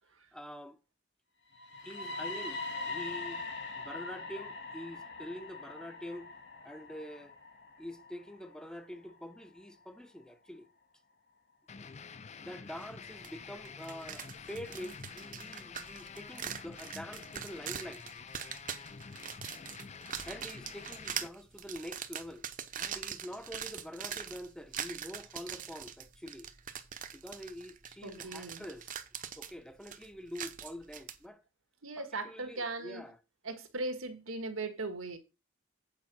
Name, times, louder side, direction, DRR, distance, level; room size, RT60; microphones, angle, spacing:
voice 1, 0.3-0.8 1.8-2.6 2.9-3.4 3.7-6.3 6.6-7.4 7.8-10.7 11.7-11.9 12.4-18.0 20.2-22.5 22.7-26.5 27.1-29.0 29.4-31.4 32.0-33.2, equal, 5° left, 0.7 m, -45 dB
sound 1, 1.5-9.4, left 3 dB, 60° left, 2.6 m, -42 dB
sound 2, 11.7-21.3, left 5 dB, 35° left, 0.5 m, -48 dB
sound 3, 13.2-13.3 13.6-31.2, right 8 dB, 40° right, 0.8 m, -42 dB
voice 2, 28.0-28.6 31.8-33.0 33.4-35.2, right 2 dB, 85° right, 1.7 m, -38 dB
8.7 x 4.9 x 6.0 m
head